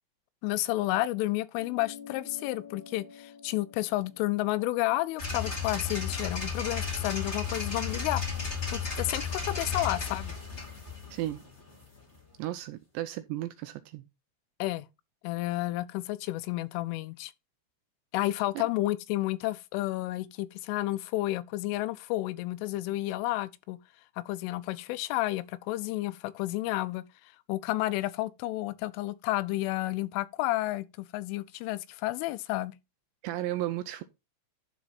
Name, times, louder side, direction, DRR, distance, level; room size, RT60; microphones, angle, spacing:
voice 1, 0.4-8.2 8.7-10.3 14.6-14.9 15.2-17.3 18.1-23.8 24.2-27.0 27.5-32.7, left 17 dB, 90° left, 3.2 m, -31 dB
sound 1, 1.6-6.4, left 7 dB, 65° left, 3.8 m, -50 dB
sound 2, 5.2-12.2, left 5 dB, 25° left, 1.6 m, -34 dB
voice 2, 12.4-14.0 33.2-34.0, right 14 dB, 80° right, 2.7 m, -34 dB
12.0 x 4.3 x 4.1 m
omnidirectional pair, 5.5 m